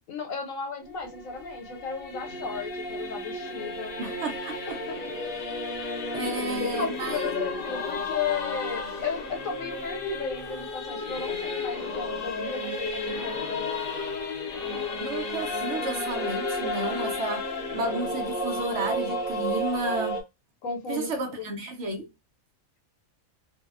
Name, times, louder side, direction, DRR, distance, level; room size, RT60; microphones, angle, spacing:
voice 1, 0.0-3.9 4.7-5.0 6.2-6.3 6.7-13.7 20.6-21.5, left 6 dB, 75° left, 1.2 m, -34 dB
Singing / Musical instrument, 0.8-20.2, left 2 dB, 55° left, 0.7 m, -32 dB
voice 2, 4.0-4.8 6.1-7.3 15.0-20.2 20.9-22.1, right 2 dB, 65° right, 0.9 m, -32 dB
2.7 x 2.0 x 2.3 m
omnidirectional pair, 1.4 m